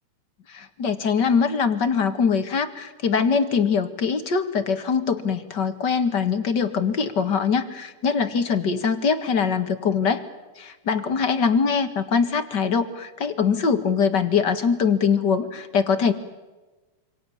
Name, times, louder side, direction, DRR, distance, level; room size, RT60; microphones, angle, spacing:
voice 1, 0.5-10.2 10.6-16.1, left 6 dB, 40° left, 9 dB, 1.8 m, -22 dB
28.0 x 27.0 x 7.2 m, 1.2 s
omnidirectional pair, 3.9 m